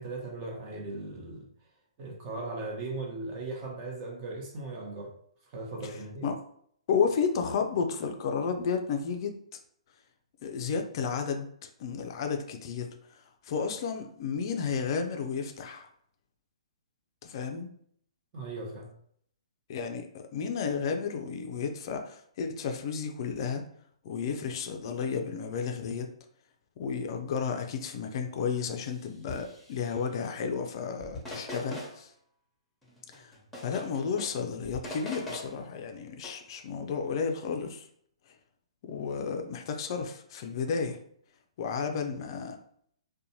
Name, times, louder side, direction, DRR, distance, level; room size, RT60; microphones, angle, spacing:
voice 1, 0.0-1.5 2.0-5.1 5.5-6.3 18.3-18.9, right 2 dB, 35° right, 0 dB, 0.8 m, -38 dB
voice 2, 6.9-9.4 10.4-11.5 11.8-12.9 13.4-15.9 17.2-17.7 19.7-23.6 24.0-26.1 26.8-32.1 33.1-33.3 33.6-37.8 38.9-41.0 41.6-42.6, left 6 dB, 45° left, 5 dB, 0.4 m, -32 dB
sound 1, 28.8-29.0 29.3-29.9 31.0-32.0 32.8-34.4 34.6-35.6 36.2-36.3, left 1 dB, 5° left, 0.8 m, -42 dB
2.5 x 2.2 x 2.8 m, 0.65 s
figure-of-eight pair, 125°, 3 cm